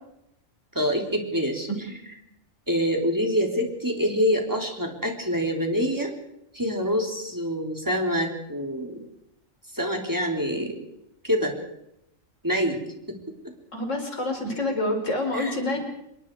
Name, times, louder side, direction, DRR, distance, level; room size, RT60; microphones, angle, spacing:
voice 1, 0.7-2.1 2.7-6.1 6.5-9.0 9.7-10.8 11.2-11.5 12.4-12.8 13.1-13.2 15.3-15.6, equal, 15° right, 2 dB, 3.6 m, -26 dB
voice 2, 13.7-15.8, left 2 dB, 65° left, 3 dB, 5.0 m, -27 dB
27.0 x 22.5 x 4.8 m, 0.82 s
omnidirectional pair, 1.4 m